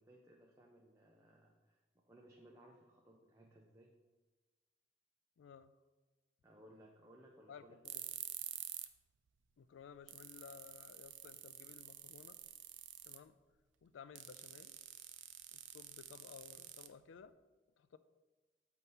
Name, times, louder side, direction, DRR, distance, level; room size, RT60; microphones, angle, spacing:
voice 1, 0.0-3.9 6.4-7.8, right 1 dB, 15° right, -2 dB, 0.5 m, -62 dB
voice 2, 5.4-5.7 7.5-8.3 9.6-12.4 13.0-13.4 13.8-14.8 15.5-17.3 17.8-18.0, left 7 dB, 90° left, 13 dB, 0.3 m, -57 dB
sound 1, 7.8-9.0 9.3-9.4 9.8-9.9 10.1-13.3 14.1-17.3, right 13 dB, 80° right, 0.4 m, -49 dB
7.8 x 2.8 x 5.4 m, 1.3 s
head